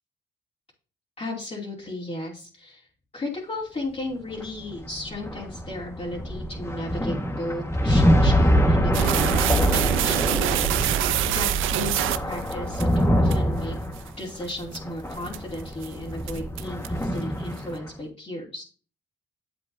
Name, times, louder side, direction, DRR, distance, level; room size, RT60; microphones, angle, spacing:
voice 1, 1.2-13.8 14.2-18.6, left 1 dB, 30° left, -5 dB, 2.9 m, -35 dB
sound 1, 4.3-17.9, equal, 15° left, 1.6 m, -24 dB
sound 2, 8.9-12.8 13.3-13.4 14.0-14.1 14.5-14.8 15.3-15.5 15.8-15.9 16.3-17.0, right 13 dB, 85° right, 0.5 m, -25 dB
10.0 x 7.7 x 2.7 m, 0.39 s
cardioid pair, 90°, 20 cm